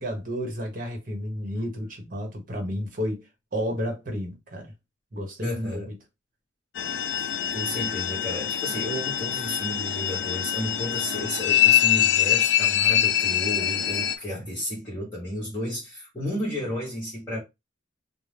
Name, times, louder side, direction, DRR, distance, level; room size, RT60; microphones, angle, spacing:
voice 1, 0.0-3.2 3.5-4.7 5.1-6.0, equal, 45° right, 0.9 m, -31 dB
voice 2, 5.4-5.9 7.5-17.4, equal, 15° left, 1.2 m, -32 dB
sound 1, 6.7-14.2, left 11 dB, 60° left, 0.3 m, -24 dB
2.7 x 2.1 x 3.3 m
head